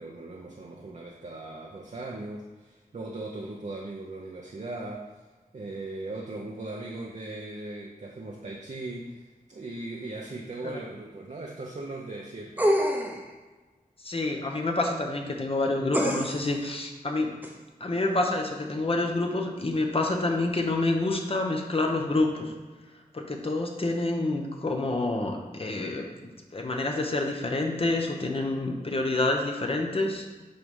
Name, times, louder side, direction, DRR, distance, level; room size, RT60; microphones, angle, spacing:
voice 1, 0.0-5.2 5.5-12.7, right 2 dB, 50° right, -1 dB, 0.7 m, -38 dB
sound 1, 12.6-13.3 15.9-16.5 17.4-17.5, equal, 10° right, 0.8 m, -25 dB
voice 2, 14.0-17.3 17.8-22.5 23.1-30.3, left 2 dB, 40° left, 2 dB, 0.9 m, -28 dB
7.7 x 3.4 x 5.4 m, 1.3 s
wide cardioid pair, 100°, 15 cm